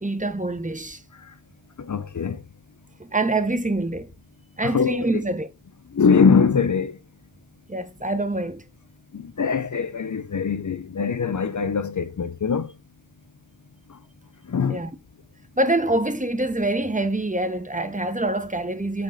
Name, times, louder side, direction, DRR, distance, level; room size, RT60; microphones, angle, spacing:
voice 1, 0.0-1.0 3.0-4.1 4.6-5.5 7.7-8.6 14.7-14.9 15.6-19.0, right 2 dB, 20° right, 1.1 m, -25 dB
voice 2, 1.8-2.4 4.6-5.2 5.9-7.0 9.1-12.7 14.5-14.8, left 5 dB, 45° left, 0.7 m, -22 dB
8.7 x 3.7 x 3.9 m
wide cardioid pair, 60°, 40 cm